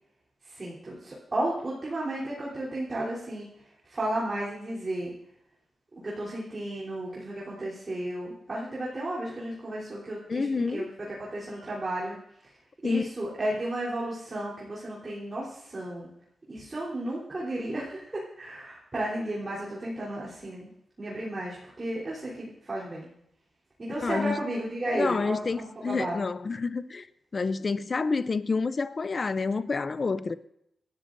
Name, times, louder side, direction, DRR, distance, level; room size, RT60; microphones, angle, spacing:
voice 1, 0.4-3.5 3.8-5.1 5.9-12.2 12.8-16.1 16.5-20.7 21.0-23.1 23.9-26.2, right 1 dB, 30° right, 3.3 m, -33 dB
voice 2, 10.3-10.9 12.8-13.1 24.0-24.4 24.9-27.1 27.3-30.4, left 4 dB, 35° left, 0.5 m, -28 dB
27.0 x 13.0 x 2.6 m
wide cardioid pair, 150°, 0 cm